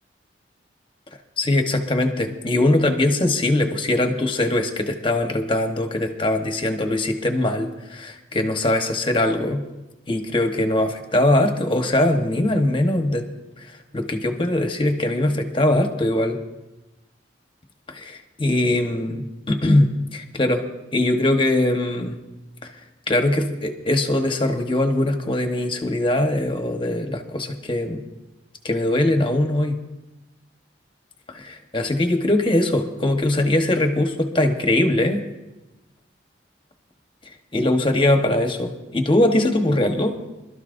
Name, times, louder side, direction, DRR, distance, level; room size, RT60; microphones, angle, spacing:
voice 1, 1.4-9.6 10.1-13.3 13.6-16.4 17.9-20.6 20.9-22.2 22.6-22.7 23.1-28.0 28.6-29.8 31.3-35.2 37.5-40.2, left 1 dB, 30° left, 5 dB, 1.2 m, -21 dB
25.5 x 12.5 x 2.6 m, 1.0 s
head